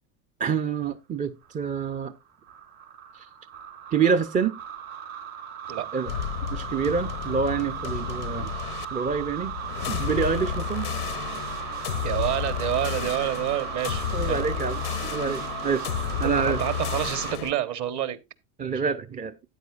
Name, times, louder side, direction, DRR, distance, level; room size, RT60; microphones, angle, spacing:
voice 1, 0.4-2.1 3.1-3.3 3.9-4.6 5.9-6.1 6.5-8.5 8.9-9.5 9.9-10.9 14.1-15.9 16.2-16.6 18.6-19.3, right 6 dB, 20° right, 0.5 m, -27 dB
sound 1, 1.4-17.3, right 9 dB, 75° right, 3.3 m, -36 dB
sound 2, 6.1-17.5, left 10 dB, 90° left, 0.8 m, -32 dB
voice 2, 12.0-14.4 16.2-18.2 18.6-18.8, right 12 dB, 40° right, 1.2 m, -28 dB
13.5 x 9.2 x 2.4 m
hypercardioid pair, 80°, 44 cm